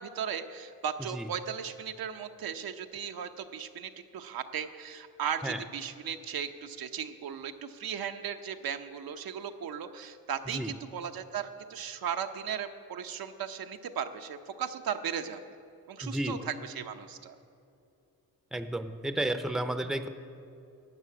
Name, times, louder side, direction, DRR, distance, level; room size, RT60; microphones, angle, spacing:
voice 1, 0.0-15.6 15.9-17.4, right 8 dB, 75° right, 6 dB, 0.8 m, -37 dB
voice 2, 16.0-16.3 18.5-20.1, right 1 dB, ahead, 9 dB, 0.6 m, -32 dB
12.5 x 6.9 x 9.3 m, 2.7 s
cardioid pair, 95°, 36 cm